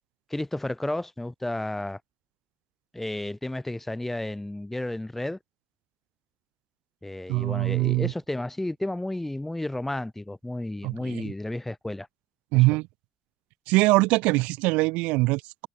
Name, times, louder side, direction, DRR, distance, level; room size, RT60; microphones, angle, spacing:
voice 1, 0.3-2.0 2.9-5.4 7.0-12.1, left 1 dB, 10° left, 1.4 m, -32 dB
voice 2, 7.3-8.1 10.8-11.3 12.5-12.9 13.7-15.7, right 23 dB, 75° right, 0.6 m, -23 dB
hypercardioid pair, 60°, 2 cm